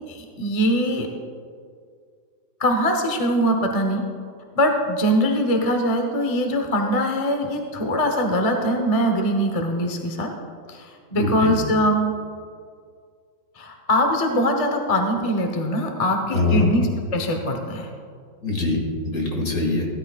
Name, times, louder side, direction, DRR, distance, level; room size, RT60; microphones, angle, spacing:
voice 1, 0.1-1.1 2.6-4.0 4.5-10.3 10.7-12.1 13.6-17.9, equal, 25° left, 3 dB, 0.7 m, -22 dB
voice 2, 11.2-11.5 16.3-16.7 18.4-19.9, left 3 dB, 50° left, -1 dB, 2.5 m, -23 dB
16.0 x 13.5 x 2.4 m, 2.1 s
omnidirectional pair, 2.0 m